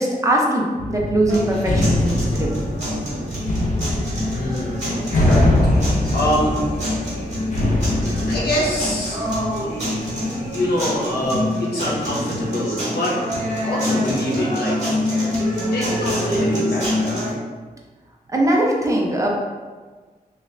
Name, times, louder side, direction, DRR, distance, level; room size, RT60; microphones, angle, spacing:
voice 1, 0.0-2.5 18.3-19.4, right 1 dB, 20° right, -2 dB, 0.6 m, -20 dB
sound 1, 0.8-9.5, left 1 dB, 55° left, 0.6 m, -22 dB
sound 2, 1.3-17.3, left 1 dB, 50° right, 1.3 m, -26 dB
voice 2, 4.3-6.6 8.3-9.2 9.6-10.0 10.5-13.2 13.6-14.8 15.7-17.1, left 1 dB, 85° left, -4 dB, 0.9 m, -25 dB
3.2 x 2.6 x 3.2 m, 1.4 s
wide cardioid pair, 125°, 16 cm